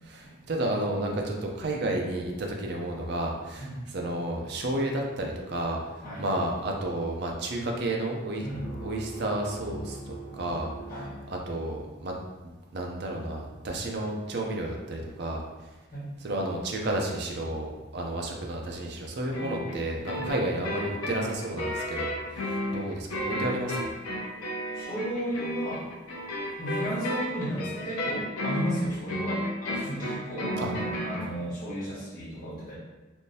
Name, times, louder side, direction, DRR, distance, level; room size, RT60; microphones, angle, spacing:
voice 1, 0.0-8.5 8.8-12.2 12.4-15.7 16.2-23.9 30.6-30.7, right 1 dB, 50° right, 0 dB, 0.5 m, -32 dB
sound 1, 8.5-12.0, right 1 dB, 60° left, 1.3 m, -41 dB
sound 2, 19.3-31.3, left 1 dB, 90° left, 0.6 m, -33 dB
voice 2, 24.7-25.9 26.6-32.8, right 1 dB, 45° left, -10 dB, 1.5 m, -34 dB
3.5 x 2.6 x 2.7 m, 1.2 s
head